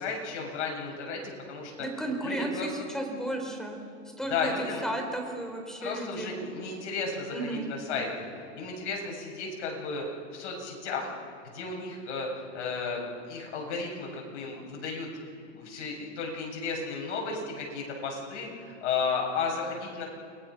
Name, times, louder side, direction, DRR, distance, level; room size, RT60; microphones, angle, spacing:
voice 1, 0.0-1.7 2.2-2.7 4.3-5.0 5.8-8.3 8.5-10.0 10.3-11.1 11.5-15.1 15.4-20.0, left 4 dB, 65° left, 0 dB, 7.4 m, -34 dB
voice 2, 1.8-3.8 4.2-4.5 4.8-6.3 7.3-7.7, right 1 dB, ahead, 2 dB, 4.6 m, -33 dB
29.5 x 21.5 x 6.4 m, 2.4 s
hypercardioid pair, 120°, 37 cm